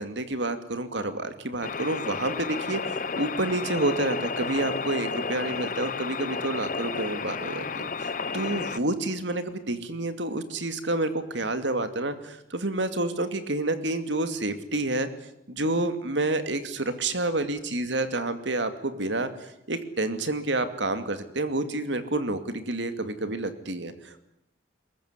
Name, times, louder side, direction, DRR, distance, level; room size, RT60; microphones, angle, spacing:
voice 1, 0.0-15.1 15.5-19.3 19.7-24.2, right 2 dB, 70° right, 10 dB, 2.6 m, -29 dB
sound 1, 1.6-8.8, left 4 dB, 45° left, 1.1 m, -32 dB
22.5 x 21.0 x 9.8 m, 0.79 s
head